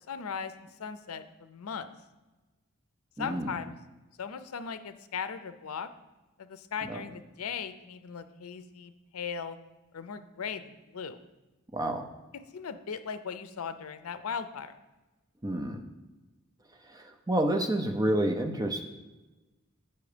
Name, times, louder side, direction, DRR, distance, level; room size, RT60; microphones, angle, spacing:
voice 1, 0.1-1.9 3.2-3.8 4.2-5.9 6.4-9.6 9.9-11.2 12.3-14.7, left 6 dB, 85° left, 11 dB, 0.5 m, -38 dB
voice 2, 3.2-3.5 6.8-7.0 11.7-12.0 15.4-15.8 16.9-18.8, right 1 dB, 15° right, 5 dB, 0.7 m, -29 dB
8.2 x 5.7 x 5.0 m, 1.1 s
head